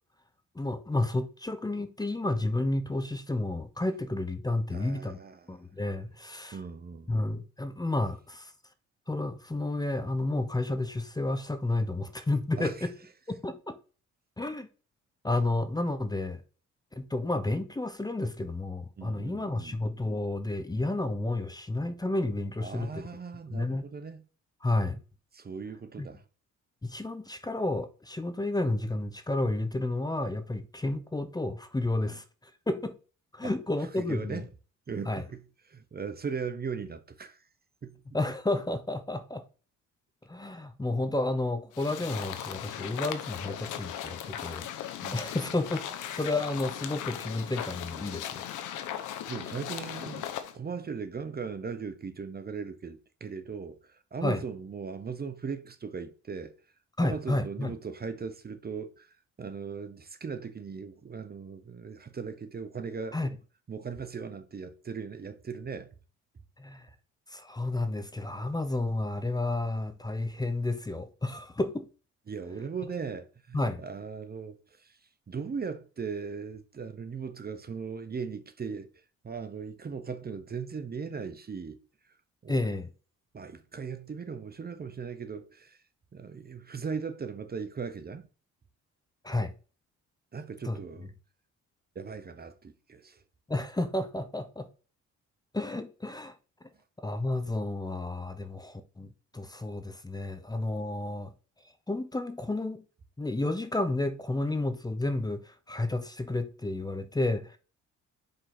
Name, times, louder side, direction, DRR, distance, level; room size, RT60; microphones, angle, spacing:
voice 1, 0.5-5.2 5.5-6.6 7.1-8.5 9.1-12.9 13.3-13.7 14.4-14.7 15.2-16.4 16.9-23.0 23.5-23.8 24.6-25.0 26.0-26.1 26.8-33.0 33.3-34.5 35.0-35.2 38.1-39.4 40.3-48.4 54.2-54.4 57.0-57.7 63.1-63.3 66.6-66.9 67.3-71.9 73.5-73.8 82.5-82.9 89.2-89.5 90.6-90.8 93.5-94.7 95.5-96.3 97.0-101.3 101.9-102.8 103.2-107.6, left 2 dB, 15° left, 0.8 m, -31 dB
voice 2, 4.7-5.5 6.5-7.1 12.6-12.9 19.0-19.8 22.6-24.2 25.3-26.2 32.0-32.2 33.4-33.5 34.0-34.5 34.9-35.4 35.7-37.4 37.8-38.0 45.0-45.2 49.3-50.3 50.5-56.6 57.0-63.3 63.7-65.9 72.3-75.0 75.3-78.9 79.2-81.8 82.4-82.6 83.3-85.8 86.1-88.3 90.3-91.1 91.9-93.2, right 5 dB, 30° right, 0.9 m, -38 dB
sound 1, 41.7-50.5, left 10 dB, 85° left, 0.9 m, -38 dB
5.3 x 3.9 x 5.8 m
cardioid pair, 90°, 30 cm